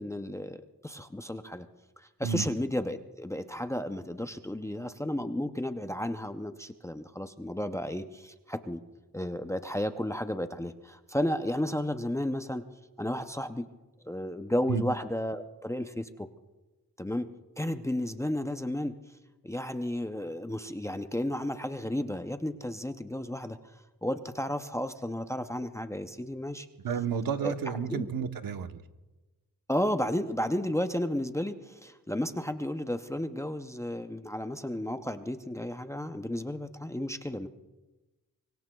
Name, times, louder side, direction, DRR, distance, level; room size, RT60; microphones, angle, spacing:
voice 1, 0.0-1.7 2.0-8.8 9.1-12.7 13.0-13.7 14.0-16.3 17.0-17.3 17.6-19.0 19.4-26.7 27.4-27.5 27.9-28.1 29.7-37.5, left 1 dB, 10° left, 8 dB, 0.5 m, -33 dB
voice 2, 26.8-28.8, right 6 dB, 75° right, 8 dB, 1.0 m, -31 dB
24.5 x 24.5 x 2.3 m, 1.2 s
wide cardioid pair, 160°, 35 cm